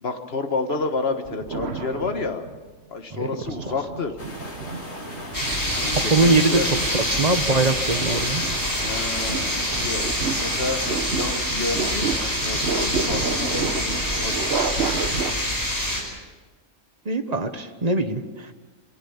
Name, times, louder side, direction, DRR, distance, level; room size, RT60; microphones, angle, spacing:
voice 1, 0.0-2.5 2.9-4.1 5.7-6.7 8.8-10.8 11.1-14.6, left 3 dB, 50° left, 7 dB, 1.7 m, -30 dB
sound 1, 1.3-2.7 3.2-15.3, right 5 dB, 55° right, 1.3 m, -31 dB
sound 2, 4.2-11.0, left 1 dB, 85° left, 4.5 m, -38 dB
sound 3, 5.3-16.0, equal, 15° left, 4.9 m, -26 dB
voice 2, 5.9-8.4 17.0-18.5, right 3 dB, 30° right, 8 dB, 1.2 m, -22 dB
23.5 x 17.0 x 7.2 m, 1.3 s
omnidirectional pair, 1.3 m